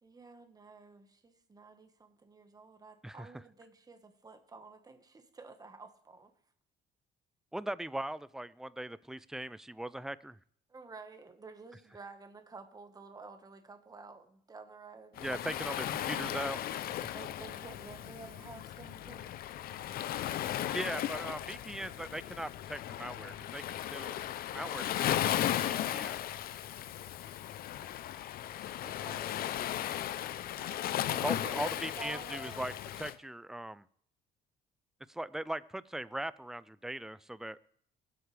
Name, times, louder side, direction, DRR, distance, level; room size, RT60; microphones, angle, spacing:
voice 1, 0.0-6.3 10.7-15.4 17.1-19.4 28.8-29.3 31.1-32.7, right 4 dB, 20° right, 7 dB, 1.4 m, -51 dB
voice 2, 7.5-10.4 15.2-17.1 20.7-23.6 23.9-24.2 24.5-26.2 31.2-33.9 35.1-37.6, right 1 dB, 5° right, 17 dB, 0.4 m, -40 dB
Waves surf, 15.2-33.1, left 12 dB, 60° left, 0.6 m, -36 dB
22.5 x 8.1 x 3.4 m, 0.63 s
cardioid pair, 110°, 17 cm